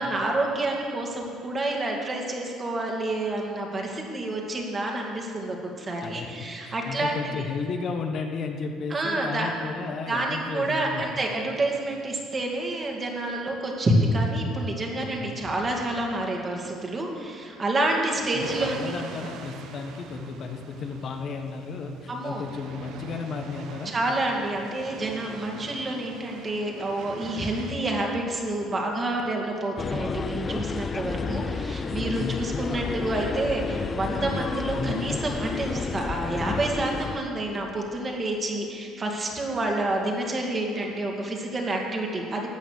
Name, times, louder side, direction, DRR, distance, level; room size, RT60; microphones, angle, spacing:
voice 1, 0.0-7.4 8.9-9.5 10.1-19.0 22.1-22.4 23.8-42.5, right 2 dB, 25° right, 0 dB, 2.3 m, -28 dB
voice 2, 6.0-11.0 15.2-15.5 18.3-23.9 31.9-32.4 32.8-33.1, left 4 dB, 50° left, 4 dB, 1.2 m, -34 dB
sound 1, 18.4-27.7, right 5 dB, 70° right, 1.3 m, -43 dB
sound 2, 29.8-37.2, left 5 dB, 30° left, 0.5 m, -30 dB
14.0 x 8.9 x 6.6 m, 2.2 s
cardioid pair, 120°, 0 cm